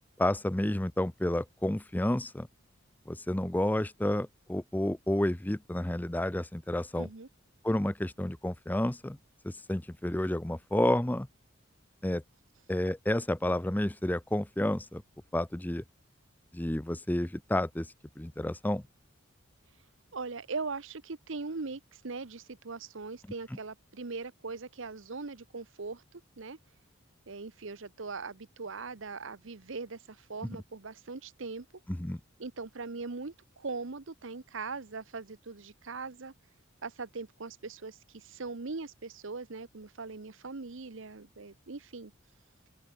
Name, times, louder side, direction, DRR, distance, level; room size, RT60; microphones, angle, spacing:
voice 1, 0.2-2.5 3.1-7.1 7.6-9.2 9.4-11.3 12.0-12.2 12.7-15.0 15.3-15.8 16.5-17.9 18.2-18.8 32.0-32.2, left 1 dB, 10° left, 0.5 m, -30 dB
voice 2, 7.0-7.3 20.1-26.6 27.3-31.7 32.4-36.3 36.8-42.1, right 4 dB, 70° right, 0.9 m, -40 dB
open air
head